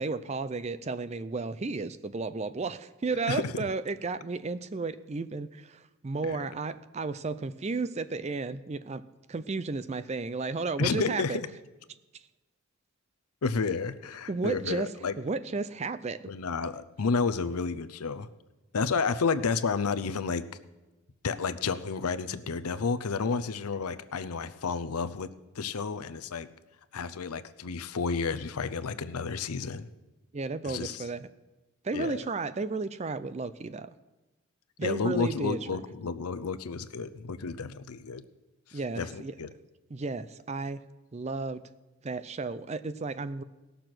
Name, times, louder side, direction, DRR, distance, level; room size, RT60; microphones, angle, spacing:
voice 1, 0.0-9.0 9.3-11.4 14.3-16.2 30.3-31.3 31.8-33.9 34.8-35.6 38.7-39.3 39.9-40.8 41.1-41.6 42.0-43.4, right 3 dB, 30° right, 13 dB, 0.4 m, -33 dB
voice 2, 3.3-3.6 6.2-6.4 10.8-11.5 13.4-15.1 16.3-18.3 18.7-20.4 21.2-25.3 25.6-26.5 26.9-29.9 30.6-31.0 31.9-32.2 34.8-38.2 38.7-39.5, left 5 dB, 80° left, 13 dB, 0.6 m, -31 dB
17.5 x 6.8 x 6.0 m, 1.1 s
head